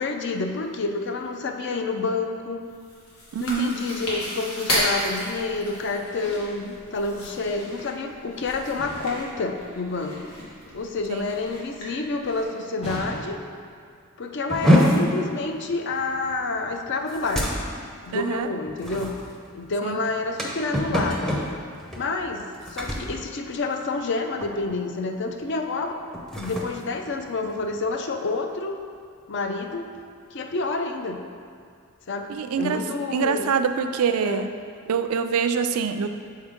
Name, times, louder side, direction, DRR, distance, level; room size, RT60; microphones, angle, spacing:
voice 1, 0.0-2.6 3.4-10.2 10.7-13.4 14.2-17.5 18.0-19.2 19.5-21.4 22.0-26.0 26.4-28.7 29.3-29.9 30.3-31.2 32.1-33.5 34.2-34.5, left 3 dB, 55° left, 4 dB, 0.4 m, -28 dB
Chewing mastication, 2.7-12.4, left 1 dB, 85° left, 1.5 m, -34 dB
voice 2, 3.3-3.8 11.1-11.3 18.1-18.5 19.8-20.0 32.3-32.8 33.1-34.5 34.9-36.1, right 6 dB, 90° right, 8 dB, 0.4 m, -25 dB
sound 1, 8.8-9.3 12.8-13.6, right 1 dB, 30° left, 1.1 m, -36 dB
sound 2, 14.5-24.1 24.4-24.8 25.2-25.4 26.0-27.9, equal, ahead, 0.5 m, -26 dB
6.4 x 4.4 x 3.6 m, 2.2 s
head